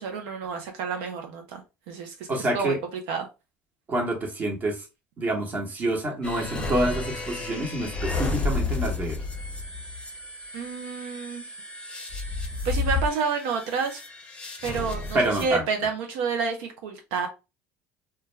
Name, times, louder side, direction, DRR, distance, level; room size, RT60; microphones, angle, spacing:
voice 1, 0.0-2.3 2.5-2.8 3.1-3.3 10.5-11.5 12.6-14.0 14.6-17.3, right 5 dB, 80° right, 0.5 m, -29 dB
voice 2, 2.3-2.8 3.9-4.9 5.2-9.2 15.1-15.6, right 1 dB, 30° right, 1.0 m, -27 dB
sound 1, 6.2-15.5, left 3 dB, 20° left, 0.6 m, -32 dB
2.2 x 2.2 x 3.1 m
supercardioid pair, 110°, 5 cm